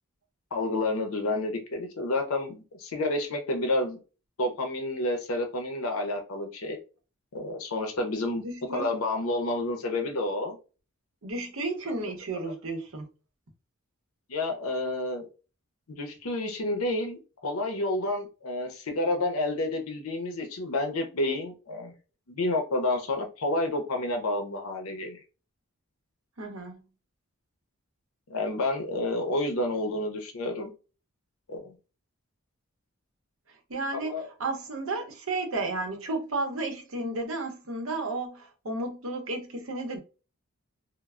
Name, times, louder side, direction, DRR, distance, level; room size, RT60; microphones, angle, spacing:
voice 1, 0.5-4.0 4.4-6.8 7.3-8.4 8.7-10.6 14.3-15.3 15.9-21.9 22.3-25.2 28.3-30.7 31.5-31.7 33.9-34.3, left 2 dB, 75° left, 0.6 m, -29 dB
voice 2, 8.4-8.9 11.2-13.1 26.4-26.8 33.7-34.1 34.4-40.0, right 2 dB, 65° right, 0.7 m, -33 dB
3.1 x 2.0 x 2.3 m
head